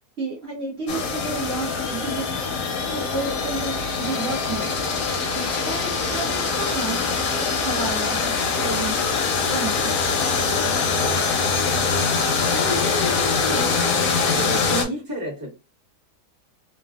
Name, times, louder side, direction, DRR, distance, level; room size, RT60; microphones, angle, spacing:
voice 1, 0.2-2.4 2.9-4.7 5.3-8.9 9.5-9.9, right 3 dB, 45° right, -6 dB, 1.2 m, -31 dB
sound 1, 0.9-14.8, left 4 dB, 65° left, 1.0 m, -23 dB
voice 2, 12.5-13.8 14.2-15.5, equal, 15° right, -5 dB, 1.0 m, -30 dB
3.3 x 2.3 x 2.2 m, 0.28 s
omnidirectional pair, 1.7 m